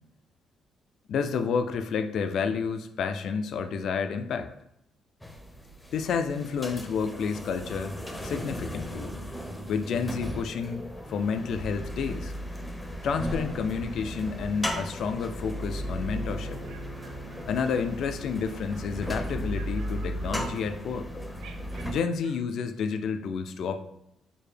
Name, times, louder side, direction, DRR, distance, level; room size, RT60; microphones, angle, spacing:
voice 1, 1.1-4.5 5.9-8.0 8.2-9.1 9.7-12.3 13.0-16.6 17.5-21.1 21.9-23.8, left 6 dB, 70° left, 9 dB, 0.3 m, -30 dB
sound 1, 5.2-21.9, equal, 10° left, 0.5 m, -36 dB
Bowed string instrument, 15.4-20.5, right 2 dB, 45° right, 0.9 m, -46 dB
sound 2, 16.6-18.1 18.4-19.2 19.5-20.8 21.4-22.5, right 6 dB, 80° right, 0.4 m, -53 dB
4.7 x 2.1 x 3.3 m, 0.79 s
cardioid pair, 90°, 0 cm